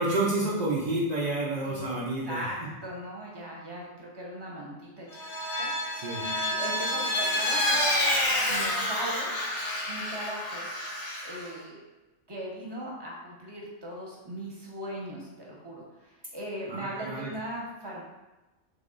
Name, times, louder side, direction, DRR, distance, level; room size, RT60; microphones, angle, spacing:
voice 1, 0.0-2.5 5.9-6.3 16.7-17.3, right 2 dB, 55° right, -6 dB, 0.4 m, -29 dB
voice 2, 2.3-5.1 5.6-7.8 8.3-9.3 9.9-10.7 11.2-11.8 12.3-18.0, right 1 dB, 20° right, -3 dB, 0.8 m, -39 dB
Vehicle, 5.1-11.5, left 1 dB, 50° left, 0.8 m, -29 dB
3.5 x 3.3 x 3.8 m, 1.1 s
omnidirectional pair, 1.4 m